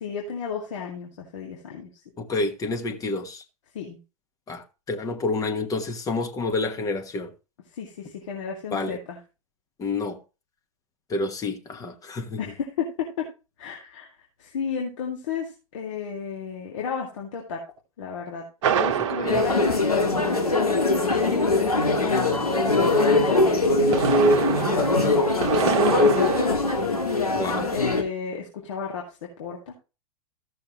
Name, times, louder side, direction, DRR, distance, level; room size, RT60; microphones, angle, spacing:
voice 1, 0.0-1.9 3.7-4.0 7.7-9.2 12.4-13.3 13.6-14.1 14.4-17.6 18.0-20.5 20.7-26.8 27.7-29.7, left 6 dB, 60° left, 2.2 m, -33 dB
voice 2, 2.2-3.4 4.5-7.3 8.7-9.0 9.8-10.2 11.1-12.4 19.2-19.4 27.3-27.7, left 3 dB, 20° left, 1.2 m, -29 dB
sound 1, 18.6-20.7 23.6-26.5, right 9 dB, 55° right, 1.0 m, -27 dB
sound 2, 19.3-28.0, left 2 dB, 85° left, 1.7 m, -21 dB
14.5 x 6.4 x 3.0 m
figure-of-eight pair, 100°, 19 cm